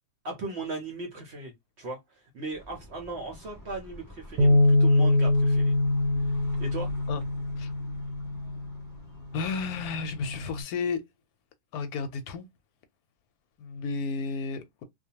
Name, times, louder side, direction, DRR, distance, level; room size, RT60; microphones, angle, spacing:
voice 1, 0.2-1.5 1.8-5.7 6.2-6.9, right 2 dB, 55° right, 0.8 m, -38 dB
sound 1, 2.5-10.4, left 1 dB, 10° left, 1.1 m, -48 dB
Bass guitar, 4.4-8.8 9.5-10.6, left 2 dB, 90° right, 1.2 m, -24 dB
voice 2, 9.3-11.0 11.7-12.4 13.6-14.8, left 4 dB, 75° left, 1.0 m, -32 dB
2.5 x 2.2 x 2.7 m
omnidirectional pair, 1.7 m